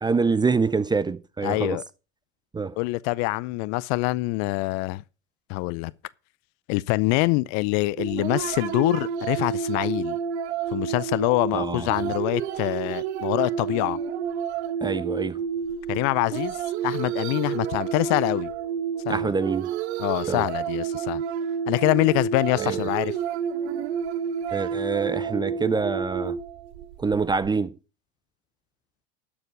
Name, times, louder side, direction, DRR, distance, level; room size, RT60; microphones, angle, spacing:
voice 1, 0.0-1.8 2.5-2.8 11.5-11.9 14.8-15.4 19.1-19.7 20.3-20.4 22.6-22.8 24.5-26.4 27.0-27.8, right 4 dB, 10° right, 0.5 m, -25 dB
voice 2, 1.4-1.8 2.8-5.0 5.5-5.9 6.7-10.2 10.7-14.0 15.9-16.6 16.8-18.5 19.1-19.3 20.0-21.2 21.7-23.1, left 22 dB, 50° left, 0.6 m, -25 dB
sound 1, 8.0-27.5, right 7 dB, 70° right, 1.1 m, -30 dB
12.0 x 7.0 x 5.0 m
hypercardioid pair, 80°, 35 cm